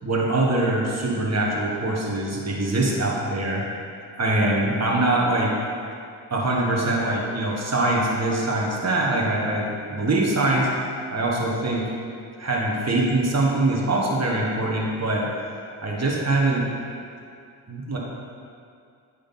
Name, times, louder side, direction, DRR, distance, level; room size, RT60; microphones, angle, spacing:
voice 1, 0.0-3.6 4.2-5.5 6.3-10.7 11.1-11.9 12.4-15.3 15.8-16.7 17.7-18.0, right 2 dB, 30° right, -3 dB, 1.7 m, -23 dB
8.8 x 3.7 x 5.6 m, 2.3 s
supercardioid pair, 50°, 49 cm